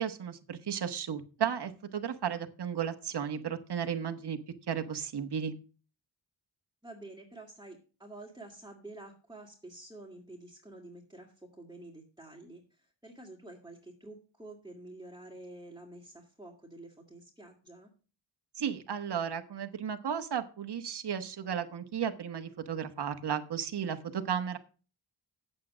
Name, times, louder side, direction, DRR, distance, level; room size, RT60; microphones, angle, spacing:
voice 1, 0.0-4.4 4.7-5.5 18.6-24.6, right 8 dB, 60° right, 7 dB, 1.3 m, -34 dB
voice 2, 6.8-17.9, right 2 dB, 10° right, -3 dB, 2.3 m, -49 dB
8.5 x 7.7 x 6.2 m, 0.36 s
cardioid pair, 75°, 46 cm